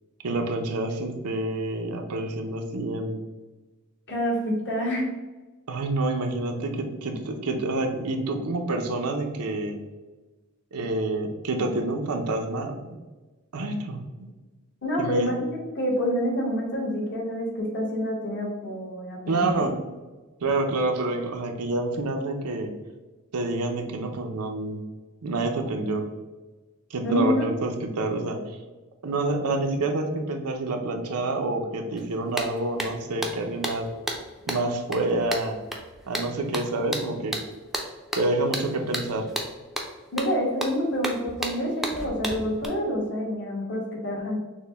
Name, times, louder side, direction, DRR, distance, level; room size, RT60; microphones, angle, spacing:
voice 1, 0.2-3.2 5.7-9.8 10.7-12.7 13.5-14.3 15.0-15.4 19.3-19.7 20.4-22.7 23.3-24.8 25.2-26.1 26.9-28.4 29.0-33.9 34.5-35.6 36.1-37.4 38.2-39.3, right 2 dB, 90° right, 4 dB, 0.6 m, -28 dB
voice 2, 4.1-5.1 14.8-19.8 27.0-27.4 36.3-36.4 40.1-44.4, equal, 55° left, -2 dB, 1.3 m, -27 dB
sound 1, 32.0-32.1 32.4-42.6, right 1 dB, ahead, 0.5 m, -33 dB
6.2 x 2.2 x 3.4 m, 1.2 s
head